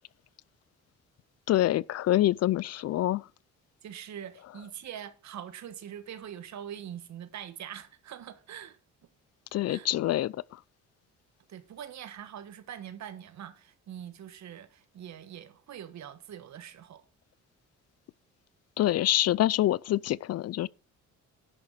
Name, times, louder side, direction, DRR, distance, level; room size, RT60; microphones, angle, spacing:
voice 1, 1.5-3.3 9.5-10.6 18.8-20.7, left 14 dB, 55° left, 0.4 m, -26 dB
voice 2, 3.8-8.8 9.7-9.9 11.5-17.0, right 9 dB, 65° right, 1.4 m, -43 dB
11.0 x 7.0 x 4.8 m
cardioid pair, 90°, 30 cm